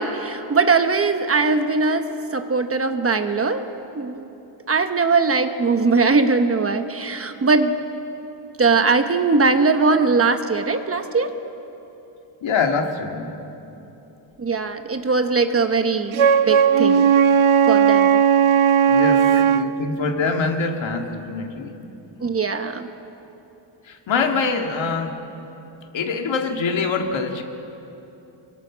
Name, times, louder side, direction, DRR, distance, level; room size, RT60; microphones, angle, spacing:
voice 1, 0.0-3.7 3.9-4.2 4.7-7.7 8.6-11.3 14.4-17.1 17.7-18.2 19.3-19.4 22.2-22.9, right 4 dB, 30° right, 7 dB, 1.0 m, -20 dB
voice 2, 12.4-13.4 18.9-21.8 23.9-25.2 25.9-27.4, left 4 dB, 70° left, 3 dB, 2.2 m, -24 dB
Wind instrument woodwind instrument, 16.1-19.7, right 7 dB, 85° right, 0.9 m, -16 dB
27.0 x 22.5 x 6.2 m, 2.9 s
wide cardioid pair, 175°, 47 cm